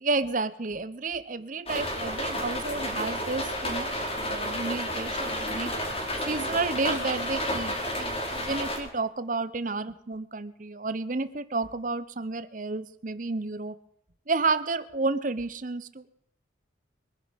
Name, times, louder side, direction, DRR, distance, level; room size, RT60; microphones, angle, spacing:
voice 1, 0.0-5.7 6.3-13.8 14.3-16.1, right 3 dB, 45° right, 14 dB, 0.8 m, -31 dB
sound 1, 1.7-8.8, equal, 30° left, 4.0 m, -31 dB
23.5 x 10.5 x 5.3 m, 0.75 s
head